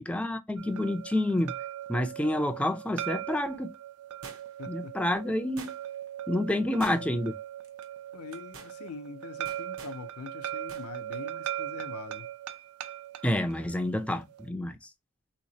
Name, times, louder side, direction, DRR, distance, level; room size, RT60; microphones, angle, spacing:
voice 1, 0.0-1.5 1.9-3.7 4.7-5.7 6.3-7.3 13.2-14.9, left 1 dB, 5° left, 0.4 m, -29 dB
sound 1, 0.6-14.4, right 11 dB, 85° right, 0.4 m, -39 dB
sound 2, 4.2-4.7 5.6-6.1 6.8-7.3 7.6-7.8 8.3-8.8 9.5-10.0 10.7-10.9 11.2-11.3, right 4 dB, 65° right, 0.8 m, -47 dB
voice 2, 4.6-5.0 6.6-7.2 8.1-12.3, left 5 dB, 75° left, 0.5 m, -44 dB
3.4 x 2.9 x 2.7 m
head